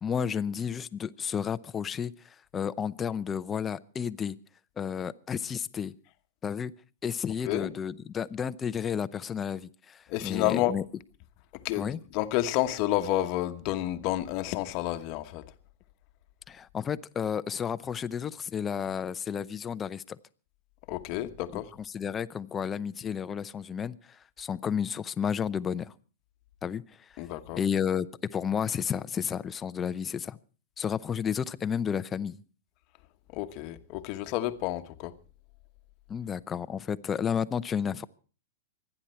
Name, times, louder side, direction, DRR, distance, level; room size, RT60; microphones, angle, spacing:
voice 1, 0.0-4.4 4.8-5.9 6.4-6.7 7.0-10.8 11.8-12.0 16.5-20.2 21.5-21.6 21.9-25.9 26.6-26.8 27.6-30.4 30.8-32.4 36.1-38.1, left 7 dB, 20° left, 0.6 m, -32 dB
voice 2, 10.1-10.7 11.5-15.4 20.9-21.7 27.2-27.6 33.3-35.1, left 14 dB, 45° left, 1.1 m, -30 dB
25.5 x 9.9 x 4.4 m
hypercardioid pair, 130°, 0 cm